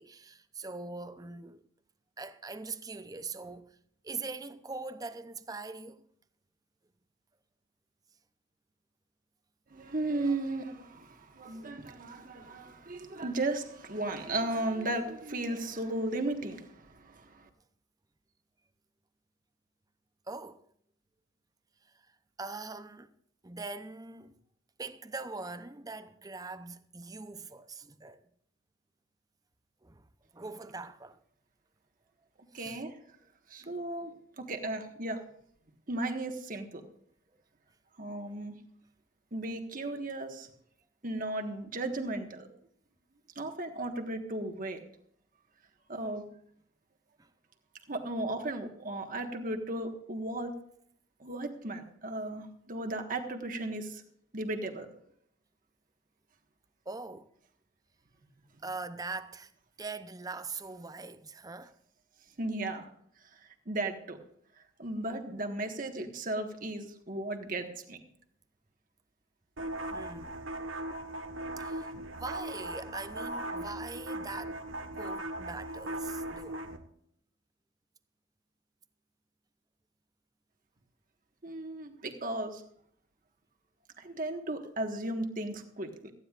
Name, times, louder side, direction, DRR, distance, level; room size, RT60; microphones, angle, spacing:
voice 1, 0.0-1.7 2.2-3.8 4.0-6.0 20.3-20.6 21.8-22.1 22.4-23.1 23.4-24.3 24.8-28.2 29.8-30.1 30.3-31.2 32.5-32.8 47.2-47.3 56.9-57.3 58.6-59.5 59.8-61.7 69.9-70.4 71.6-74.6 75.0-76.7, right 3 dB, 20° right, 0.7 m, -42 dB
voice 2, 9.7-17.5 32.5-32.9 33.5-35.2 35.9-36.8 38.0-38.6 39.3-40.5 41.0-42.5 43.3-44.8 45.9-46.2 47.9-50.5 51.2-54.0 54.3-54.9 62.4-62.9 63.7-64.2 64.8-68.0 81.4-82.6 84.0-86.1, right 2 dB, 45° right, 1.6 m, -35 dB
sound 1, 69.6-76.8, right 1 dB, 85° right, 1.4 m, -38 dB
18.0 x 14.5 x 2.5 m
head